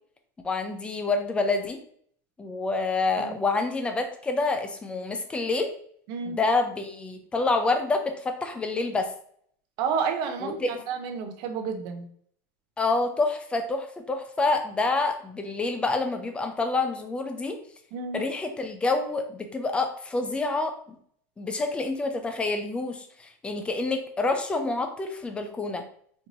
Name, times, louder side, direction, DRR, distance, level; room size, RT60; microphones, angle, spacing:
voice 1, 0.4-1.8 2.4-5.7 6.3-9.1 10.4-10.8 12.8-17.6 18.1-21.0 21.4-25.8, left 3 dB, 10° left, 6 dB, 0.4 m, -27 dB
voice 2, 6.1-6.4 9.8-10.5 10.9-12.0 17.9-18.2, right 6 dB, 45° right, 5 dB, 0.6 m, -30 dB
4.4 x 2.6 x 2.7 m, 0.62 s
supercardioid pair, 150°, 10 cm